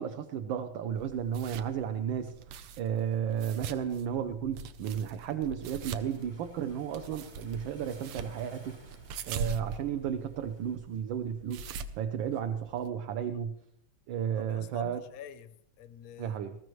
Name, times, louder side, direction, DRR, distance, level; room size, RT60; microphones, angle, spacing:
voice 1, 0.0-2.3 2.8-8.8 9.2-11.6 12.0-13.5 14.1-15.0 16.2-16.6, right 8 dB, 70° right, 1.4 m, -33 dB
sound 1, 1.0-12.9, right 5 dB, 90° right, 1.7 m, -43 dB
Waves surf, 5.6-10.8, right 1 dB, 20° right, 0.8 m, -57 dB
voice 2, 14.3-16.4, left 9 dB, 65° left, 0.8 m, -48 dB
20.0 x 14.5 x 3.1 m
omnidirectional pair, 2.4 m